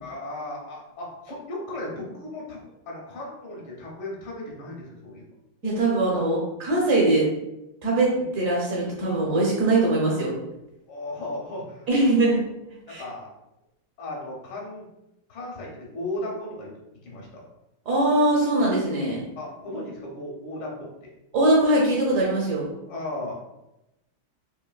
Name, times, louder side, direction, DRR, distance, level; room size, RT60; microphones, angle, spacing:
voice 1, 0.0-2.6 2.9-5.3 6.1-6.2 7.0-7.1 8.2-8.3 10.9-12.3 12.9-13.3 14.0-14.9 15.3-16.7 17.0-17.4 19.4-21.1 22.9-23.3, left 1 dB, 75° left, -2 dB, 1.7 m, -36 dB
voice 2, 5.6-7.3 7.8-10.3 11.9-12.4 12.9-13.0 17.9-19.2 21.3-22.7, right 2 dB, 60° right, -4 dB, 0.8 m, -22 dB
4.7 x 2.6 x 2.3 m, 0.93 s
omnidirectional pair, 2.3 m